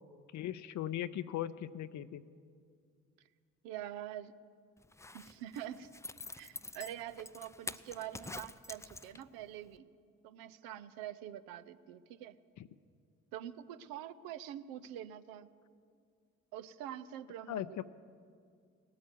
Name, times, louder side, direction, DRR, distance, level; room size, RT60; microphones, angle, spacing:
voice 1, 0.3-2.2 12.6-12.7 17.5-17.8, left 12 dB, 55° left, 13 dB, 0.6 m, -38 dB
voice 2, 3.6-4.4 5.1-5.9 6.4-9.9 10.2-12.4 13.3-15.5 16.5-17.8, right 11 dB, 80° right, 12 dB, 0.6 m, -45 dB
Zipper (clothing), 4.8-9.4 9.8-9.9, left 3 dB, 10° left, 0.4 m, -47 dB
18.0 x 8.6 x 8.1 m, 2.2 s
hypercardioid pair, 50°, 34 cm